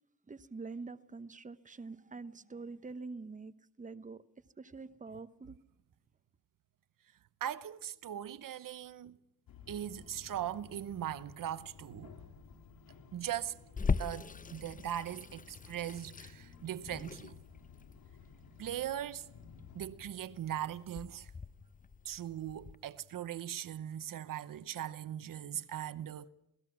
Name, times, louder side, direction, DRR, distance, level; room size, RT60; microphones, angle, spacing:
voice 1, 0.3-4.2 4.6-5.6, right 4 dB, 20° right, 1.0 m, -45 dB
voice 2, 7.4-9.2 9.7-12.1 13.1-13.6 14.0-17.4 18.6-19.3 19.7-21.3 22.0-26.3, right 11 dB, 65° right, 0.8 m, -40 dB
sound 1, 9.5-23.1, left 6 dB, 85° left, 3.1 m, -56 dB
Water tap faucet / Sink (filling or washing), 13.8-22.7, left 5 dB, 25° left, 0.7 m, -40 dB
27.0 x 18.5 x 6.0 m
cardioid pair, 75°, 35 cm